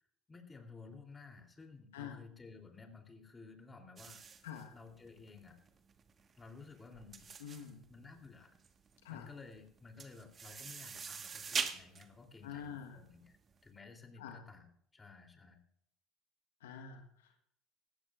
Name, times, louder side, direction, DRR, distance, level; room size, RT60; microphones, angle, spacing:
voice 1, 0.3-4.2 4.7-5.6 6.4-7.3 7.9-8.5 9.1-13.4 13.6-15.6, left 4 dB, 20° left, 4 dB, 3.2 m, -54 dB
sound 1, 4.0-13.6, right 6 dB, 35° right, 1.5 m, -44 dB
voice 2, 7.4-7.8 9.0-9.3 12.4-13.0 14.2-14.4 16.6-17.4, left 8 dB, 80° left, 5 dB, 1.3 m, -46 dB
18.5 x 15.5 x 2.5 m, 0.71 s
hypercardioid pair, 65°, 0 cm